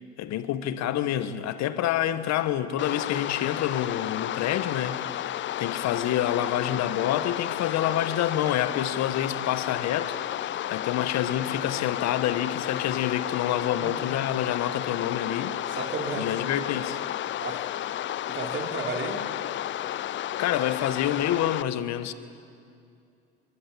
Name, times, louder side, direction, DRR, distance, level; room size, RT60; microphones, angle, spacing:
voice 1, 0.0-5.3 5.6-15.6 16.2-17.0 20.4-22.1, left 11 dB, 55° left, 1.5 m, -28 dB
sound 1, 2.8-21.6, left 12 dB, 35° left, 0.6 m, -32 dB
voice 2, 15.7-16.3 17.4-17.6 18.3-19.2, right 4 dB, 35° right, 4.4 m, -33 dB
25.0 x 23.0 x 8.7 m
hypercardioid pair, 70°, 33 cm